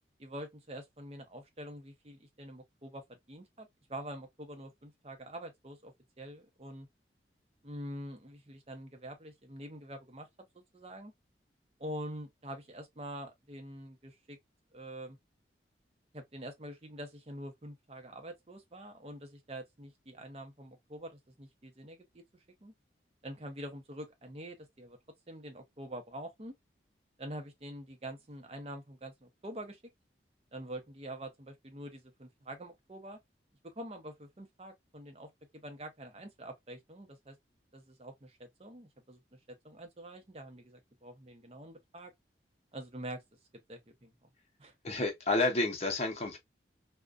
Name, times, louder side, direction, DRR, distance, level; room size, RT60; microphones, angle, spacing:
voice 1, 0.2-6.9 7.6-10.3 10.5-11.1 11.8-14.4 14.7-15.2 16.1-22.2 22.6-22.7 23.2-25.0 25.3-26.5 27.2-29.8 30.5-33.2 33.6-37.4 37.7-39.2 39.5-42.1 42.7-43.2 43.7-44.1 44.6-44.7, right 1 dB, 35° right, 0.6 m, -45 dB
voice 2, 44.8-46.4, left 2 dB, 35° left, 0.7 m, -30 dB
2.4 x 2.2 x 2.3 m
head